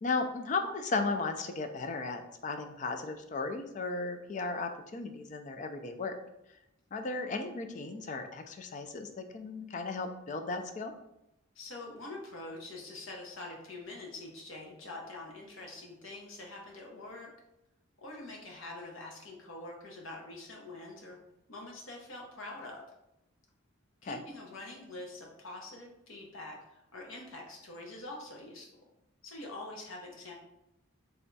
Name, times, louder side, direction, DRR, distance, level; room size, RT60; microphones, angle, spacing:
voice 1, 0.0-6.2 6.9-10.9 24.0-24.2, left 3 dB, 35° left, 6 dB, 0.3 m, -35 dB
voice 2, 11.5-17.3 18.0-21.2 21.5-22.8 24.0-28.7 29.2-30.3, left 2 dB, 70° left, 0 dB, 0.9 m, -45 dB
3.4 x 2.2 x 3.9 m, 0.86 s
head